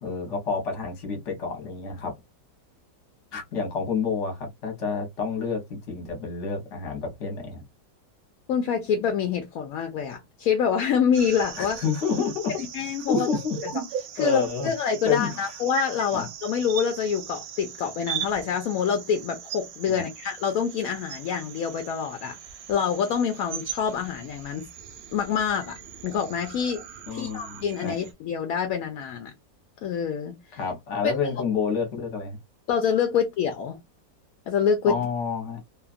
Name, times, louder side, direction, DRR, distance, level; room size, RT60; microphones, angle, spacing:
voice 1, 0.0-2.2 3.3-7.6 11.6-12.5 13.1-13.6 14.2-14.7 15.0-15.5 16.1-16.3 19.9-20.0 27.1-27.9 30.5-32.4 34.8-35.6, left 5 dB, 50° left, 1.1 m, -29 dB
voice 2, 8.5-11.8 12.5-13.3 13.6-13.7 14.1-22.4 22.7-24.7 25.1-26.8 27.1-29.3 29.8-30.6 31.0-31.1 32.7-33.8 34.5-35.0, left 7 dB, 70° left, 0.9 m, -26 dB
sound 1, 11.1-28.1, right 8 dB, 65° right, 1.0 m, -38 dB
2.8 x 2.4 x 2.4 m
omnidirectional pair, 1.9 m